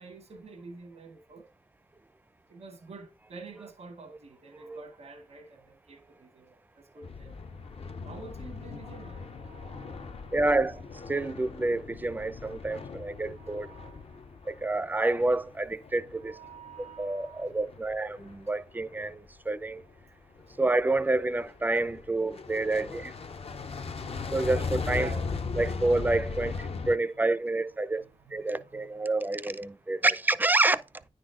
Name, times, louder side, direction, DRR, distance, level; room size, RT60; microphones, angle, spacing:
voice 1, 0.0-1.5 2.5-7.4 8.0-10.6 12.5-14.7 16.1-17.9 20.5-20.6 24.9-25.8 26.4-29.1, right 3 dB, 90° right, 1.1 m, -49 dB
sound 1, 7.0-19.3 19.8-20.0 20.4-27.0, left 4 dB, 60° left, 0.6 m, -39 dB
voice 2, 10.3-13.7 14.5-16.4 17.0-19.8 20.6-23.2 24.3-25.1 25.5-28.0 28.3-30.8, right 2 dB, 15° right, 0.4 m, -28 dB
9.8 x 4.1 x 3.7 m
wide cardioid pair, 115°, 11 cm